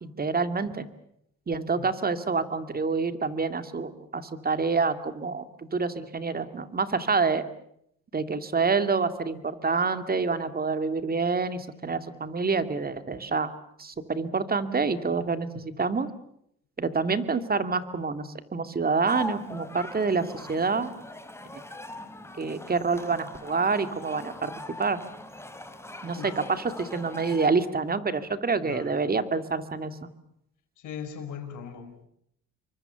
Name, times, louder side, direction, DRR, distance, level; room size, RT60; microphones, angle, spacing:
voice 1, 0.0-0.9 1.5-7.4 8.1-13.5 13.8-16.1 16.8-20.9 21.5-21.6 22.4-24.5 24.8-25.0 26.0-30.1, right 4 dB, 30° right, 10 dB, 2.3 m, -27 dB
sound 1, 19.1-27.5, left 1 dB, 10° left, 3.0 m, -42 dB
voice 2, 28.6-29.1 30.8-32.1, left 7 dB, 80° left, 5 dB, 5.8 m, -40 dB
28.5 x 23.5 x 7.0 m, 0.72 s
cardioid pair, 90°, 30 cm